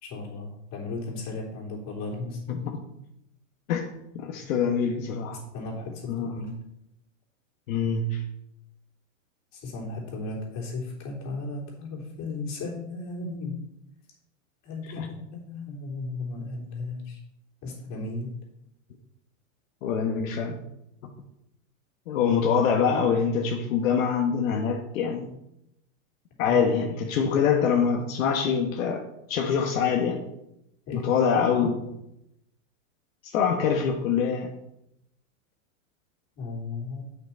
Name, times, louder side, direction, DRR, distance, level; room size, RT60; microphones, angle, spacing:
voice 1, 0.0-2.7 5.3-6.6 9.5-13.6 14.6-17.2 17.6-18.3 26.5-26.6 30.9-31.1 36.4-37.0, left 3 dB, 40° left, -2 dB, 3.1 m, -35 dB
voice 2, 3.7-5.4 6.1-6.4 7.7-8.2 15.0-15.1 19.8-20.6 22.1-25.3 26.4-29.0 29.3-30.2 30.9-31.9 33.2-34.5, left 6 dB, 80° left, 1 dB, 1.2 m, -25 dB
8.2 x 6.0 x 4.3 m, 0.82 s
supercardioid pair, 135°, 39 cm